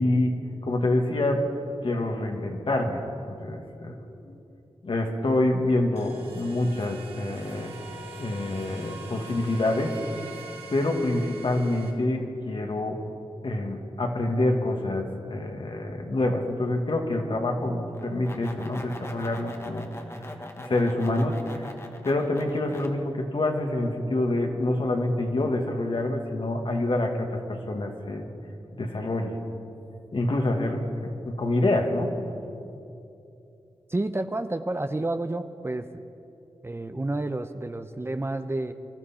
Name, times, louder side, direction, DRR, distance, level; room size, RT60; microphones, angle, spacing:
voice 1, 0.0-1.4 1.8-3.0 3.3-4.4 4.8-7.7 8.2-10.0 10.7-13.0 13.4-19.9 20.6-21.6 22.0-28.2 28.7-29.4 30.1-30.8 31.3-32.1, left 2 dB, 55° left, 3 dB, 1.9 m, -26 dB
sound 1, 6.0-11.9, right 3 dB, 75° right, 2.9 m, -43 dB
sound 2, 17.9-22.9, left 1 dB, 25° left, 1.5 m, -42 dB
voice 2, 33.9-35.9 36.6-38.7, right 2 dB, 25° right, 9 dB, 0.7 m, -30 dB
24.5 x 12.5 x 4.4 m, 2.7 s
cardioid pair, 65°, 11 cm